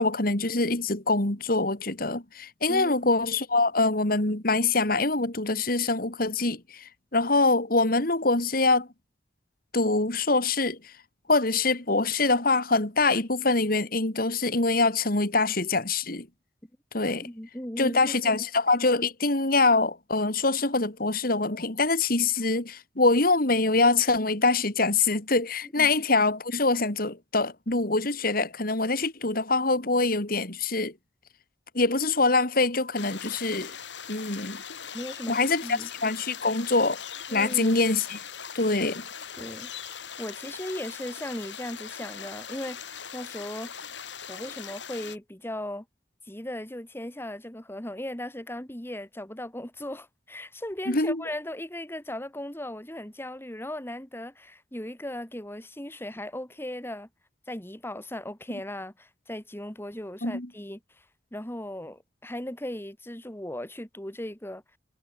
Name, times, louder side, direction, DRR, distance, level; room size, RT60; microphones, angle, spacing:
voice 1, 0.0-8.9 9.7-10.9 11.3-16.3 16.9-17.3 17.8-30.9 31.7-33.7 34.1-34.6 35.3-37.0 37.3-38.2 38.5-39.0 50.9-51.2 60.2-60.5, left 3 dB, 55° left, 2.9 m, -24 dB
voice 2, 2.7-3.2 17.2-18.3 25.8-25.9 34.9-35.9 37.3-37.8 39.4-39.7 40.2-43.7 44.3-45.9 46.3-57.1 57.5-61.0 61.3-64.6, left 1 dB, 15° left, 2.5 m, -37 dB
sound 1, 33.0-45.2, left 7 dB, 90° left, 6.0 m, -41 dB
head